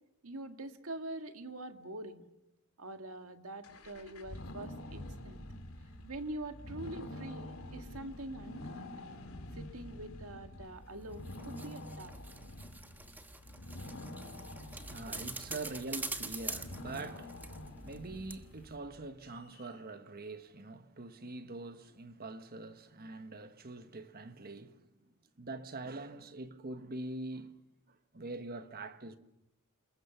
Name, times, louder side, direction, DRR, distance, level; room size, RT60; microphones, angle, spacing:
voice 1, 0.2-2.3 2.8-5.4 6.0-8.9 9.5-12.1, right 2 dB, 80° right, 1.8 m, -44 dB
sound 1, 3.6-19.1, left 1 dB, 85° left, 2.9 m, -47 dB
sound 2, 11.0-18.0 18.3-18.4, right 2 dB, 10° right, 1.2 m, -45 dB
voice 2, 14.3-27.6 27.9-29.2, right 2 dB, 45° right, 1.3 m, -44 dB
sound 3, 19.2-19.9, left 7 dB, 65° left, 4.6 m, -65 dB
28.5 x 21.0 x 6.9 m
head